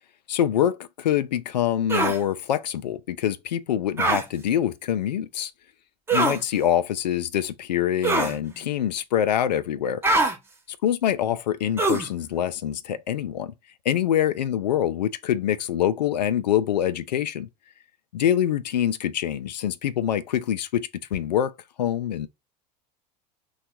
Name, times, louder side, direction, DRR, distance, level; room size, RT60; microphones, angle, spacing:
voice 1, 0.3-5.5 6.1-10.0 10.8-13.5 13.9-17.5 18.1-21.5 21.8-22.3, left 10 dB, 80° left, 0.4 m, -25 dB
sound 1, 1.9-2.2 4.0-4.2 6.1-6.4 8.0-8.4 10.0-10.4 11.8-12.1, right 2 dB, 10° right, 0.7 m, -22 dB
3.3 x 2.4 x 4.3 m
hypercardioid pair, 85°, 21 cm